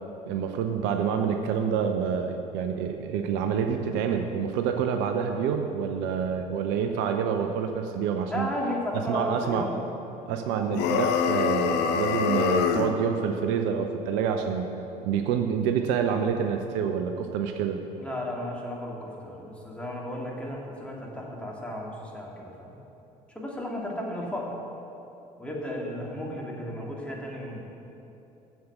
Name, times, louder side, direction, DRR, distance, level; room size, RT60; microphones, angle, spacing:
voice 1, 0.3-8.5 9.1-9.6 10.3-14.7 15.0-17.8, right 7 dB, 60° right, 5 dB, 0.7 m, -27 dB
voice 2, 8.3-9.8 18.0-22.8 23.3-24.5 25.4-27.7, left 1 dB, 5° left, -3 dB, 2.2 m, -34 dB
sound 1, 10.7-13.0, left 7 dB, 55° left, 0.7 m, -25 dB
7.7 x 7.2 x 6.8 m, 2.9 s
figure-of-eight pair, 60°, 21 cm